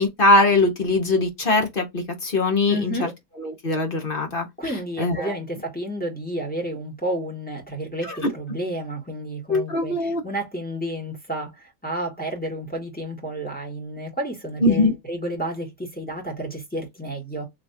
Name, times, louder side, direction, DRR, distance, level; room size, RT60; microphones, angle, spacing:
voice 1, 0.0-3.1 3.4-4.5 5.0-5.3 8.0-8.3 9.5-10.2 14.6-14.9, left 2 dB, 40° left, 1.1 m, -21 dB
voice 2, 2.7-3.1 4.6-17.5, right 1 dB, 5° left, 1.7 m, -31 dB
4.3 x 3.1 x 2.8 m
omnidirectional pair, 1.8 m